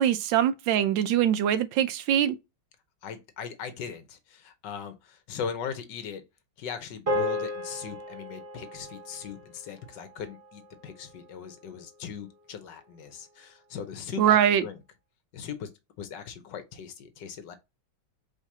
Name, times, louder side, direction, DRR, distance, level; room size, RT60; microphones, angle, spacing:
voice 1, 0.0-2.4 14.2-14.6, right 10 dB, 85° right, 1.3 m, -23 dB
voice 2, 3.0-6.2 6.6-14.8 15.3-15.7 16.0-17.6, left 7 dB, 75° left, 1.5 m, -39 dB
sound 1, 7.1-11.6, left 1 dB, 25° right, 0.9 m, -35 dB
5.1 x 3.3 x 2.7 m
omnidirectional pair, 2.0 m